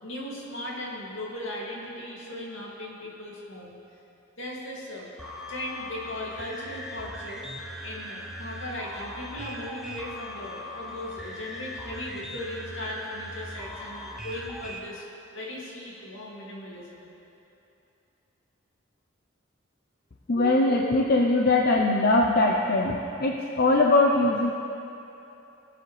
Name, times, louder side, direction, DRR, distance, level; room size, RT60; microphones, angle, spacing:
voice 1, 0.0-3.8 4.4-5.1 5.5-7.5 7.8-15.0 15.3-17.1, left 1 dB, 75° left, -4 dB, 2.4 m, -37 dB
sound 1, 5.2-14.8, left 1 dB, 5° right, 0.8 m, -40 dB
voice 2, 20.3-24.5, left 2 dB, 50° left, 0 dB, 0.6 m, -21 dB
20.5 x 7.8 x 3.3 m, 2.9 s
head